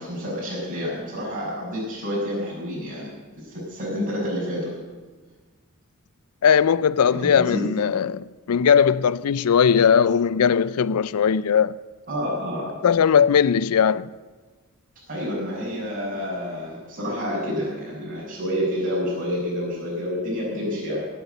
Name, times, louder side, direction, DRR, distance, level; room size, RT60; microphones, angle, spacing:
voice 1, 0.0-3.1 3.4-4.8 7.1-7.6 12.1-12.8 15.1-21.1, equal, 40° right, 6.4 m, -28 dB
voice 2, 6.4-11.8 12.8-14.1, left 7 dB, 90° left, 0.4 m, -19 dB
18.0 x 8.4 x 7.9 m
head